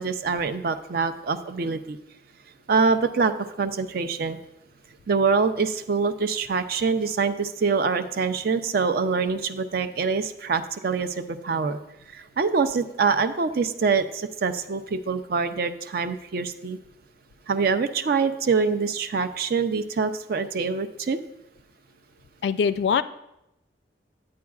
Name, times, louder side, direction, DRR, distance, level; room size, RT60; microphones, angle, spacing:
voice 1, 0.0-2.0 2.7-4.4 5.1-11.8 12.1-16.8 17.5-21.2, right 5 dB, 55° right, 10 dB, 0.4 m, -25 dB
voice 2, 22.4-23.0, left 6 dB, 70° left, 14 dB, 0.3 m, -22 dB
10.5 x 8.4 x 2.4 m, 0.87 s
head